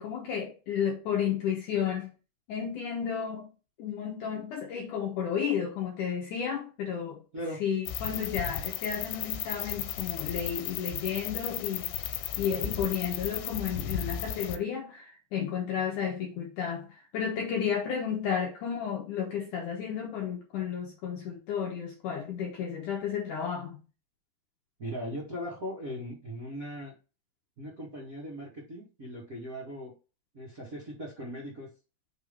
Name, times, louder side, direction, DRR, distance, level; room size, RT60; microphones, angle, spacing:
voice 1, 0.0-2.1 2.5-3.5 3.8-7.2 7.6-23.8, left 8 dB, 70° left, 1.9 m, -32 dB
sound 1, 7.9-14.6, left 10 dB, 85° left, 2.7 m, -35 dB
voice 2, 24.8-26.9 27.6-29.9 30.3-31.7, equal, 90° right, 0.7 m, -39 dB
5.9 x 3.6 x 5.2 m
omnidirectional pair, 4.9 m